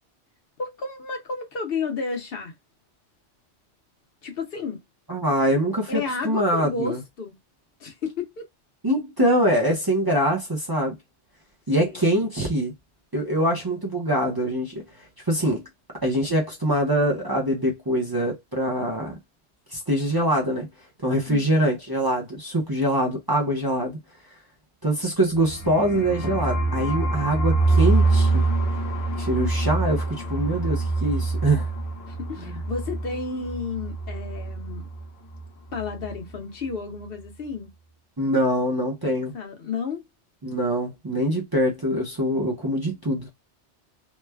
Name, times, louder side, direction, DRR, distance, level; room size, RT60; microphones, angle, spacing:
voice 1, 0.6-2.5 4.2-4.8 5.9-7.4 7.8-8.5 11.8-12.0 13.4-13.6 21.3-21.7 32.1-34.9 35.7-37.7 39.0-40.0, left 4 dB, 55° left, 0.9 m, -32 dB
voice 2, 5.1-7.0 8.8-11.0 11.7-12.7 13.1-14.8 15.3-15.6 16.0-19.2 19.7-20.7 21.0-24.0 24.8-28.4 29.2-31.7 32.4-32.6 38.2-39.3 40.4-43.3, right 1 dB, 25° right, 0.5 m, -24 dB
sound 1, 25.3-35.0 35.3-35.4 35.7-36.2, right 3 dB, 90° left, 0.9 m, -25 dB
3.1 x 2.1 x 2.2 m
omnidirectional pair, 1.2 m